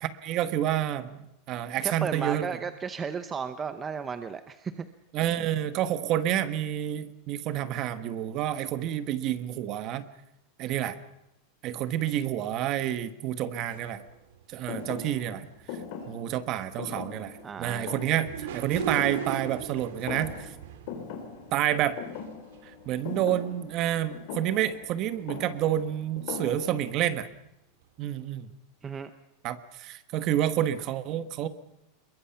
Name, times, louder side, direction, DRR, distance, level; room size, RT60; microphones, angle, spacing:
voice 1, 0.0-2.6 5.1-10.1 10.6-11.0 11.6-14.0 14.5-15.5 16.1-20.5 21.5-22.0 22.6-27.3 28.0-28.5 29.4-31.5, right 11 dB, 35° right, 12 dB, 1.3 m, -29 dB
voice 2, 1.8-4.9 17.4-17.9 28.8-29.1, right 6 dB, 15° right, 10 dB, 0.8 m, -34 dB
sound 1, 13.7-16.3 16.7-26.4 26.9-27.0 27.2-27.3, right 8 dB, 80° right, 2.8 m, -41 dB
Thump thud, 14.7-19.7 20.0-20.6 20.9-27.0, left 6 dB, 50° left, 4.6 m, -40 dB
26.5 x 22.5 x 5.8 m, 0.87 s
supercardioid pair, 170°, 0 cm